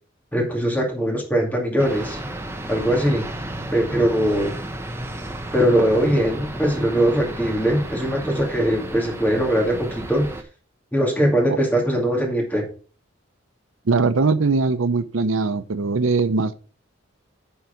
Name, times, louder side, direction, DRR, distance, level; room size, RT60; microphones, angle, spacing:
voice 1, 0.3-2.2 2.7-3.3 3.7-4.5 5.5-10.3 10.9-12.6, equal, 10° left, 2.5 m, -21 dB
sound 1, 1.8-10.4, right 1 dB, 15° right, 0.9 m, -33 dB
voice 2, 13.9-16.5, right 4 dB, 80° right, 0.7 m, -21 dB
10.0 x 4.7 x 5.1 m
head